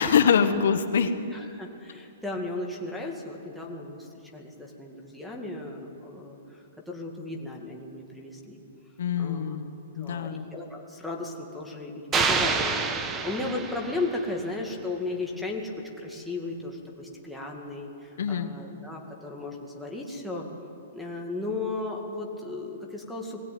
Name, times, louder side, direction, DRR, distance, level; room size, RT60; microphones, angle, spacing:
voice 1, 0.0-1.1 9.0-10.4 18.2-18.5, left 7 dB, 65° left, 9 dB, 1.3 m, -24 dB
voice 2, 0.9-8.6 9.2-9.6 10.0-20.5 20.9-23.4, left 2 dB, ahead, -3 dB, 2.2 m, -35 dB
sound 1, 12.1-14.3, right 4 dB, 15° right, 1.2 m, -27 dB
20.5 x 16.5 x 9.4 m, 2.7 s
hypercardioid pair, 160°, 0 cm